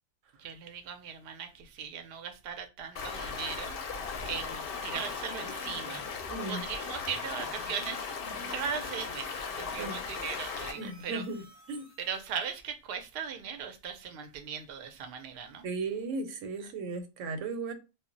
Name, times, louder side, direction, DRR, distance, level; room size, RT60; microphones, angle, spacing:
voice 1, 0.4-3.8 4.3-8.1 8.5-11.2 12.0-15.6, right 7 dB, 65° right, 0.7 m, -38 dB
Stream, 3.0-10.7, left 5 dB, 60° left, 0.7 m, -37 dB
sound 1, 5.5-12.5, equal, 15° left, 0.6 m, -53 dB
voice 2, 6.3-6.6 9.8-10.0 10.7-11.4 11.7-11.9 15.6-17.7, right 3 dB, 85° right, 1.0 m, -36 dB
2.2 x 2.0 x 3.7 m
omnidirectional pair, 1.2 m